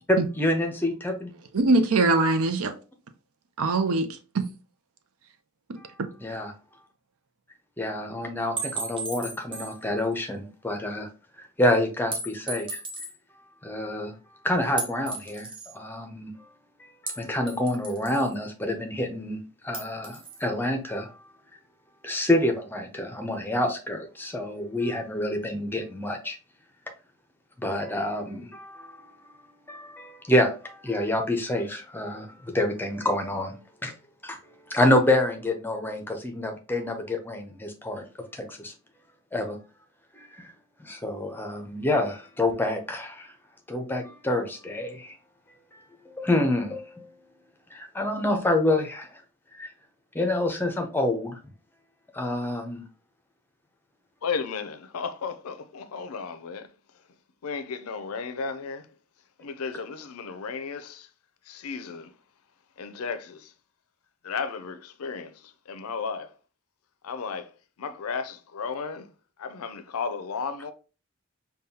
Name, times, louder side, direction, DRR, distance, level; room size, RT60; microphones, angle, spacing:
voice 1, 0.1-1.3 5.8-5.9 6.2-6.5 7.8-11.1 11.4-12.8 13.6-14.1 14.4-16.3 16.8-21.2 22.0-26.4 27.6-29.1 29.7-33.5 33.8-33.9 34.2-38.1 38.3-38.7 39.3-39.6 40.1-40.5 40.8-43.3 43.7-45.2 45.7-45.8 46.1-47.1 47.7-49.2 49.5-49.7 50.1-51.4 52.1-52.8, left 1 dB, 10° left, 0.5 m, -27 dB
voice 2, 1.5-2.7 3.6-4.5 5.7-5.8, right 3 dB, 80° right, 0.6 m, -22 dB
sound 1, 8.6-9.8 10.2-10.3 12.1-13.1 14.8-15.7 17.1-18.3 19.7-20.4, right 3 dB, 25° right, 0.7 m, -35 dB
voice 3, 54.2-56.7 57.4-58.9 59.4-61.1 61.4-62.1 62.8-63.5 64.2-66.3 67.0-67.5 67.8-69.1 69.4-70.7, left 5 dB, 85° left, 0.5 m, -34 dB
5.3 x 2.3 x 2.7 m
head